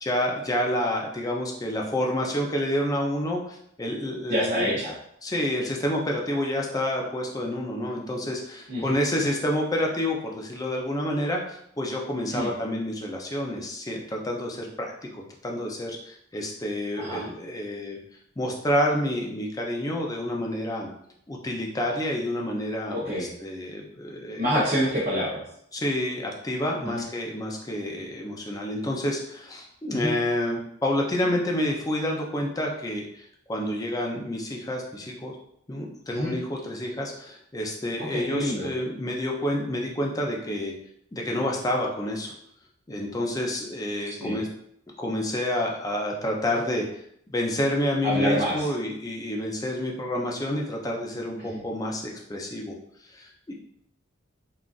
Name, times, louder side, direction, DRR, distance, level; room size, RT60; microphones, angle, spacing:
voice 1, 0.0-4.8 5.2-18.0 18.4-20.9 21.3-24.5 25.7-35.4 35.7-40.7 41.1-42.3 42.9-44.5 45.0-46.9 47.3-52.7 53.1-53.5, left 1 dB, 20° left, 0 dB, 0.4 m, -29 dB
voice 2, 4.3-4.9 8.7-8.9 12.3-12.5 17.0-17.2 22.9-23.3 24.4-25.4 26.9-27.0 29.9-30.1 36.1-36.3 38.1-38.7 44.2-44.4 48.0-48.7 51.4-51.6, equal, 40° right, -7 dB, 0.7 m, -27 dB
3.8 x 2.4 x 2.4 m, 0.71 s
head